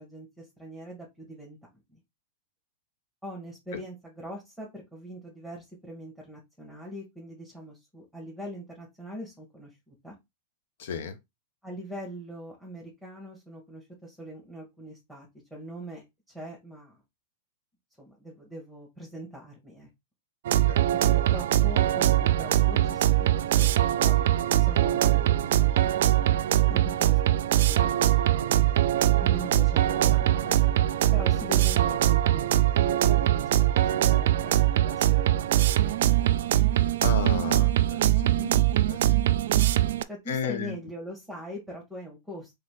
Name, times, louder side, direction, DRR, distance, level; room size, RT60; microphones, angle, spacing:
voice 1, 0.0-1.6 1.9-2.0 3.2-10.2 11.6-17.0 18.0-19.9 21.1-26.1 26.7-27.2 27.6-28.7 29.0-30.6 31.1-36.0 38.2-38.5 40.1-42.5, equal, ahead, 1.9 m, -42 dB
voice 2, 10.8-11.2 20.7-20.8 37.0-38.1 38.9-39.0 40.3-40.7, left 6 dB, 65° left, 1.0 m, -32 dB
sound 1, 20.5-40.0, right 13 dB, 65° right, 0.3 m, -22 dB
sound 2, 28.8-40.2, left 8 dB, 40° left, 0.8 m, -51 dB
3.8 x 3.3 x 3.8 m
hypercardioid pair, 100°, 0 cm